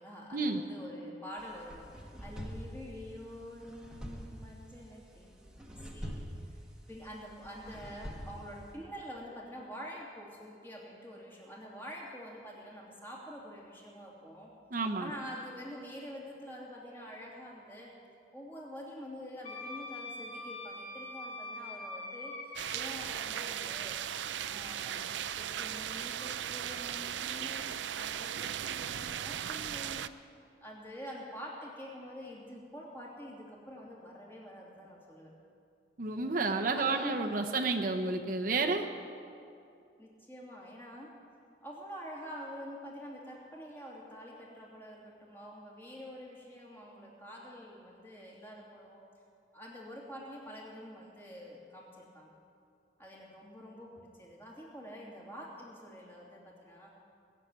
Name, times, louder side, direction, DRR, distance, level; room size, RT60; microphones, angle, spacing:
voice 1, 0.0-6.6 6.9-17.9 18.3-24.0 24.5-25.0 25.3-30.0 30.6-35.3 36.7-37.3 40.0-41.2 41.6-49.0 49.5-52.3 53.0-56.9, equal, 10° left, -3 dB, 2.8 m, -47 dB
sound 1, 1.4-8.7, equal, 5° right, 1.5 m, -46 dB
voice 2, 14.7-15.1 36.0-38.9, right 3 dB, 50° right, 4 dB, 0.9 m, -31 dB
Wind instrument woodwind instrument, 19.4-22.8, left 2 dB, 35° left, 2.6 m, -43 dB
sound 2, 22.6-30.1, right 9 dB, 85° right, 0.5 m, -37 dB
19.5 x 7.4 x 9.5 m, 2.5 s
head